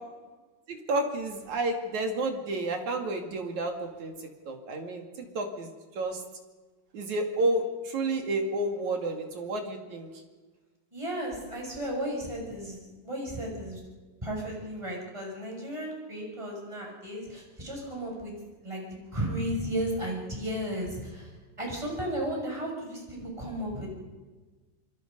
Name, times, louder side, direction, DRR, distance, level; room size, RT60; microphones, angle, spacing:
voice 1, 0.7-4.1 4.5-5.0 5.3-5.7 6.0-6.2 6.9-10.1, right 2 dB, 50° right, 4 dB, 3.2 m, -30 dB
voice 2, 10.9-12.8 13.0-13.8 14.2-18.3 18.6-21.3 21.6-23.9, equal, 5° right, -1 dB, 6.6 m, -34 dB
26.5 x 24.5 x 5.3 m, 1.3 s
omnidirectional pair, 4.8 m